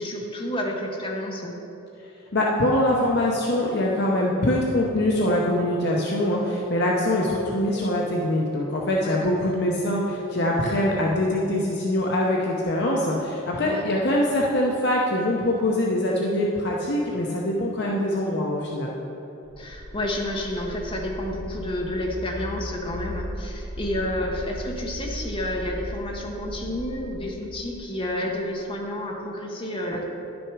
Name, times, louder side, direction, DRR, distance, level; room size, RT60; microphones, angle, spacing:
voice 1, 0.0-1.6 8.9-9.3 13.6-13.9 19.6-30.0, left 1 dB, 25° left, 0 dB, 1.0 m, -30 dB
voice 2, 2.3-18.9, left 1 dB, 50° left, -2 dB, 0.7 m, -23 dB
sound 1, 19.5-28.2, equal, 85° right, 1.4 m, -37 dB
10.5 x 6.2 x 4.7 m, 3.0 s
head